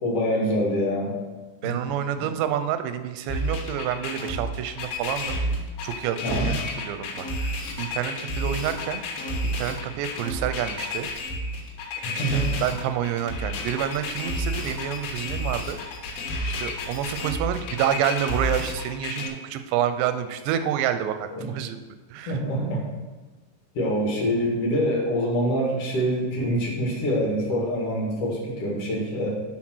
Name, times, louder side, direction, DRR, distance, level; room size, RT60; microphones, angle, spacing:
voice 1, 0.0-1.1 1.6-1.8 2.2-2.3 6.2-6.5 12.0-12.4 21.3-21.4 22.3-22.8 23.7-29.3, equal, 45° left, -2 dB, 2.1 m, -25 dB
voice 2, 1.6-5.4 5.8-9.0 9.4-11.1 12.1-15.8 16.4-21.8 22.1-22.4, right 10 dB, 90° right, 10 dB, 2.9 m, -28 dB
sound 1, 3.3-19.3, left 1 dB, 80° left, 3.5 m, -30 dB
10.0 x 4.3 x 6.2 m, 1.3 s
omnidirectional pair, 4.9 m